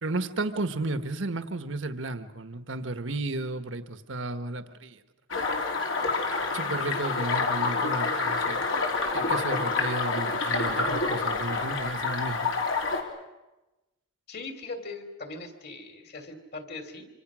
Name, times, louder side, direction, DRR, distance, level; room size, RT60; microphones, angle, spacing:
voice 1, 0.0-5.0 6.5-8.6 9.1-12.5, right 2 dB, 75° right, 10 dB, 1.4 m, -33 dB
sound 1, 5.3-13.0, left 3 dB, 80° left, 3.5 m, -28 dB
voice 2, 14.3-17.1, left 3 dB, 50° left, 7 dB, 2.9 m, -40 dB
26.0 x 26.0 x 6.3 m, 1.0 s
head